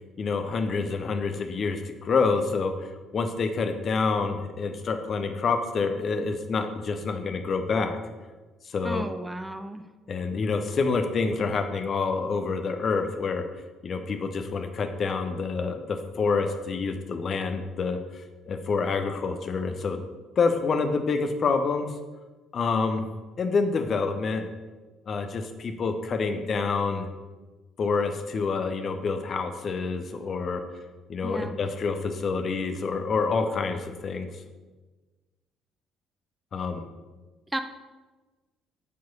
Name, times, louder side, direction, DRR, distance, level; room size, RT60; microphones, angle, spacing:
voice 1, 0.2-2.9 3.1-8.0 8.7-9.0 10.1-13.4 13.8-20.0 20.4-21.9 22.5-23.1 23.4-24.5 25.1-27.1 27.8-30.6 31.1-34.3 36.5-36.8, left 4 dB, 45° left, 7 dB, 0.7 m, -27 dB
voice 2, 8.8-9.8 31.2-31.6 37.5-37.6, right 1 dB, 10° right, 8 dB, 0.5 m, -33 dB
8.3 x 4.8 x 5.4 m, 1.3 s
figure-of-eight pair, 50°, 0 cm